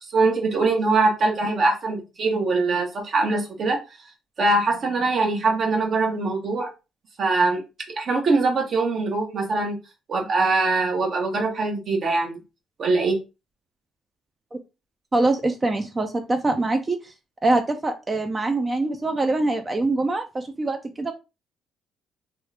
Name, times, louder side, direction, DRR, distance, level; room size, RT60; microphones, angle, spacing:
voice 1, 0.1-3.8 4.4-6.7 7.2-7.6 7.9-9.8 10.1-12.4 12.8-13.2, right 3 dB, 50° right, 2 dB, 1.0 m, -22 dB
voice 2, 15.1-17.0 17.4-21.1, right 2 dB, 25° right, 6 dB, 0.5 m, -24 dB
2.9 x 2.4 x 3.3 m, 0.28 s
cardioid pair, 90°, 0 cm